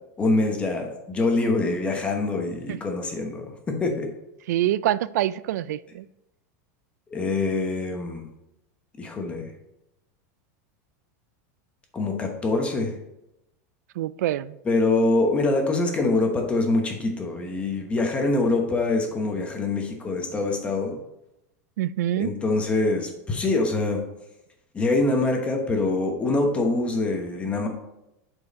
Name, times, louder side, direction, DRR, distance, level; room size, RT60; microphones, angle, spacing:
voice 1, 0.2-4.1 7.1-8.3 9.0-9.5 11.9-13.0 14.6-21.0 22.2-24.0 24.7-27.7, left 2 dB, 15° left, 3 dB, 1.0 m, -24 dB
voice 2, 4.5-6.1 14.0-14.6 21.8-22.3, right 13 dB, 85° right, 18 dB, 0.4 m, -25 dB
8.5 x 4.6 x 4.2 m, 0.87 s
supercardioid pair, 165°, 9 cm